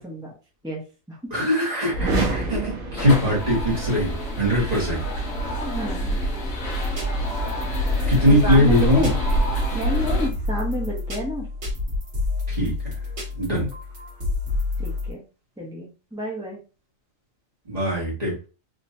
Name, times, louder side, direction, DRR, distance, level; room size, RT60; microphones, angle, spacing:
voice 1, 0.6-1.2 4.6-4.9 5.6-6.2 8.3-9.1 9.7-11.5 14.8-15.2 15.6-16.6, equal, 5° right, -3 dB, 0.7 m, -30 dB
voice 2, 1.3-5.0 7.4-7.5 8.1-9.1 12.5-13.0 13.3-13.7 17.6-18.4, equal, 30° right, -5 dB, 1.7 m, -21 dB
sound 1, 1.9-3.9, right 2 dB, 85° right, 1.3 m, -27 dB
sound 2, 3.0-10.3, right 1 dB, 55° left, 1.3 m, -26 dB
sound 3, 6.8-15.1, left 3 dB, 55° right, 1.8 m, -29 dB
3.8 x 2.9 x 2.7 m, 0.33 s
omnidirectional pair, 1.4 m